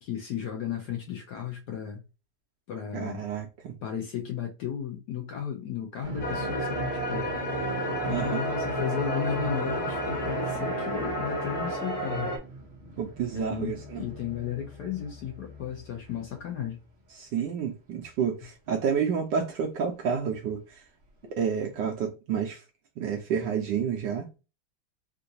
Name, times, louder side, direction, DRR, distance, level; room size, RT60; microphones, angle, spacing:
voice 1, 0.0-2.0 2.7-3.2 3.8-7.3 8.0-12.3 13.3-16.8 21.2-21.3, left 8 dB, 70° left, 1.0 m, -34 dB
voice 2, 2.9-3.8 8.1-8.4 13.0-14.0 17.1-20.8 21.3-22.6 23.0-24.3, right 7 dB, 75° right, 1.1 m, -30 dB
sound 1, 6.0-17.0 17.3-17.4 18.7-18.8 20.2-20.3 21.8-21.9, right 3 dB, 55° right, 0.8 m, -40 dB
sound 2, 6.2-12.4, equal, 50° left, 1.5 m, -31 dB
Bowed string instrument, 7.1-11.5, equal, 30° left, 1.0 m, -42 dB
3.7 x 2.5 x 2.6 m
omnidirectional pair, 2.3 m